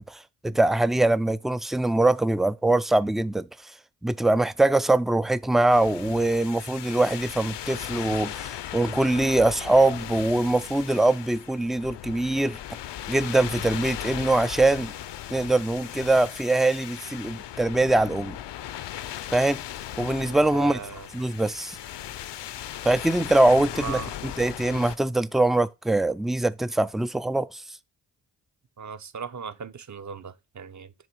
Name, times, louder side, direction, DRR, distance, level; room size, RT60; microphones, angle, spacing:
voice 1, 0.0-3.7 4.0-12.6 13.1-14.9 15.3-18.4 19.3-19.6 20.0-20.8 21.1-21.8 22.8-27.8, right 2 dB, ahead, 0.3 m, -23 dB
sound 1, 5.7-25.0, left 12 dB, 60° left, 0.6 m, -37 dB
voice 2, 20.5-21.1 23.7-24.1 28.8-31.1, right 6 dB, 35° right, 0.7 m, -37 dB
7.3 x 3.1 x 4.5 m
supercardioid pair, 50°, 48 cm